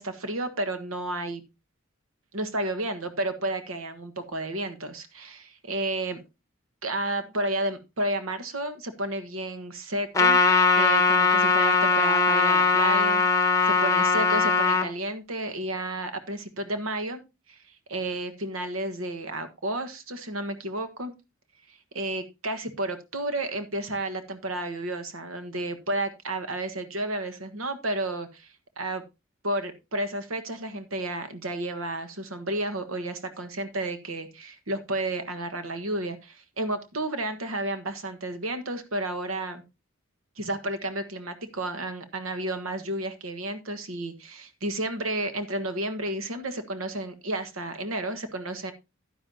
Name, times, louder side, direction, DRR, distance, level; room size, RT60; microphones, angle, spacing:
voice 1, 0.0-1.4 2.3-6.2 6.8-10.4 10.8-17.2 17.5-21.1 21.7-29.0 29.4-39.6 40.4-48.7, right 1 dB, 85° right, 9 dB, 1.5 m, -32 dB
Trumpet, 10.1-14.9, left 4 dB, 15° left, 1.1 m, -20 dB
11.0 x 10.0 x 2.8 m, 0.25 s
head